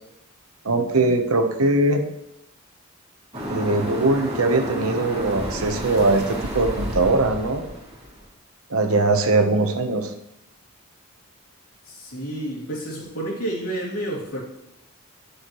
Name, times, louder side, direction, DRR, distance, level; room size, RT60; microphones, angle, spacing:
voice 1, 0.6-2.0 3.5-7.6 8.7-10.1, right 2 dB, 75° right, 6 dB, 1.0 m, -21 dB
sound 1, 3.3-8.2, equal, 25° right, 2.2 m, -31 dB
voice 2, 11.9-14.4, right 1 dB, 80° left, -4 dB, 2.9 m, -30 dB
10.0 x 6.5 x 3.1 m, 0.84 s
head